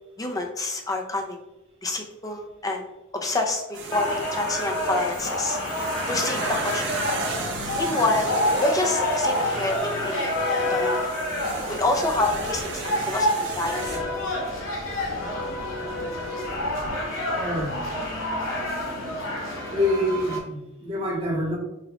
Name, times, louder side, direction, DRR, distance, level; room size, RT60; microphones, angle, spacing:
voice 1, 0.2-1.4 1.8-2.8 3.2-5.6 6.1-6.8 7.8-8.3 8.6-10.2 10.7-11.1 11.7-14.0, left 2 dB, 15° left, 3 dB, 0.5 m, -27 dB
sound 1, 3.7-14.0, right 3 dB, 50° right, 0.7 m, -35 dB
sound 2, 3.9-20.4, left 1 dB, 60° left, 1.3 m, -28 dB
voice 2, 17.3-17.7 19.7-21.6, left 1 dB, 25° right, -4 dB, 1.1 m, -26 dB
5.7 x 2.4 x 3.4 m, 0.95 s
head